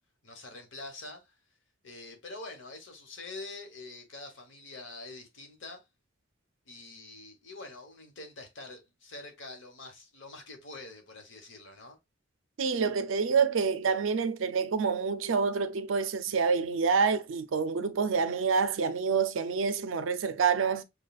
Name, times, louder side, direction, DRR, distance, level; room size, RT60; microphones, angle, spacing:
voice 1, 0.2-1.3 1.8-5.8 6.7-12.0, left 2 dB, 65° left, 1.2 m, -45 dB
voice 2, 12.6-20.8, right 5 dB, 75° right, 0.5 m, -27 dB
6.4 x 2.3 x 2.3 m
head